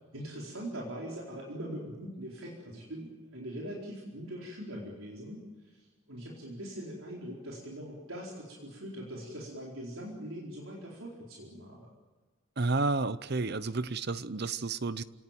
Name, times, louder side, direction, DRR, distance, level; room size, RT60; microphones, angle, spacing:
voice 1, 0.1-11.9, equal, 80° right, -3 dB, 4.5 m, -42 dB
voice 2, 12.6-15.0, right 3 dB, 50° right, 15 dB, 0.8 m, -31 dB
29.5 x 18.0 x 9.1 m, 1.3 s
head